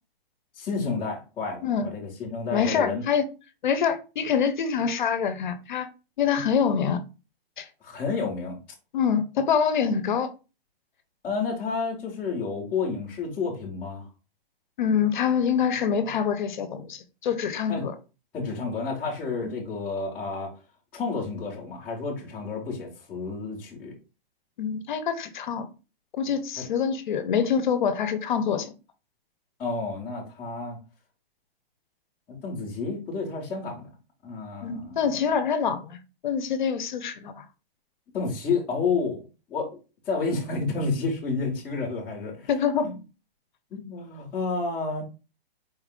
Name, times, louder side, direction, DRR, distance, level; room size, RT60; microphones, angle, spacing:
voice 1, 0.6-3.0 7.8-8.6 11.2-14.1 17.7-17.8 18.3-20.5 20.9-23.9 26.6-26.7 29.6-30.8 32.3-33.9 34.2-35.3 38.1-39.2 39.5-39.8 40.1-42.5 42.8-43.0 43.7-45.0, left 4 dB, 5° left, 0.4 m, -30 dB
voice 2, 2.5-3.2 3.6-5.9 6.2-7.0 7.6-7.7 8.9-10.3 14.8-17.9 19.4-19.5 24.6-25.7 26.1-28.7 34.6-37.4 42.5-42.9, left 7 dB, 50° left, 0.6 m, -25 dB
4.3 x 2.4 x 3.5 m
hypercardioid pair, 165°, 30 cm